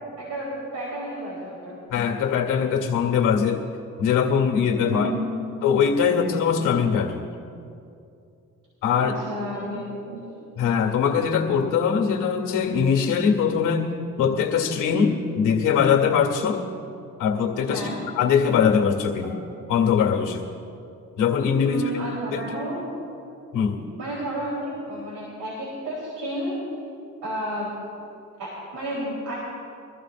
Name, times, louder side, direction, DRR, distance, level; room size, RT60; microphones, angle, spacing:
voice 1, 0.2-1.8 4.9-5.3 8.9-10.2 17.7-18.0 21.6-22.8 24.0-26.6 27.2-27.7 28.4-29.4, right 1 dB, 80° right, -6 dB, 4.0 m, -31 dB
voice 2, 1.9-3.6 4.0-5.1 5.6-7.3 8.8-9.1 10.6-13.9 14.2-16.6 17.2-17.8 18.2-19.4 19.7-20.5 21.2-21.8 22.3-22.4 23.5-23.8, left 7 dB, 85° left, 2 dB, 1.9 m, -21 dB
23.5 x 14.0 x 2.6 m, 2.6 s
cardioid pair, 90°, 30 cm